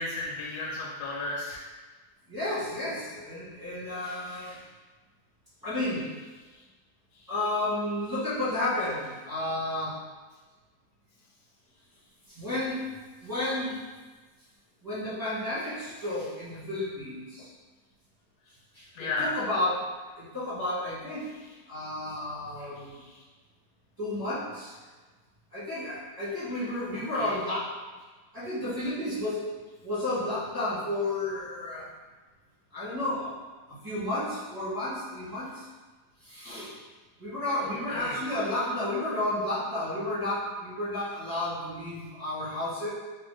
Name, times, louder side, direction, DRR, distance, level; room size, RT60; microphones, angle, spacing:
voice 1, 0.0-1.6 18.9-19.3 22.9-23.2 26.9-27.4 37.6-38.2, left 2 dB, 75° left, -4 dB, 1.1 m, -34 dB
voice 2, 2.3-4.6 5.6-6.1 7.3-10.0 12.3-12.8 13.2-13.8 14.8-17.5 18.7-19.8 20.2-21.3 21.7-22.9 24.0-24.7 25.5-27.7 28.3-29.4 29.8-31.8 32.7-33.3 33.7-35.6 36.2-36.7 37.2-42.9, left 1 dB, 15° right, -13 dB, 0.8 m, -32 dB
3.2 x 2.1 x 3.1 m, 1.3 s
omnidirectional pair, 1.8 m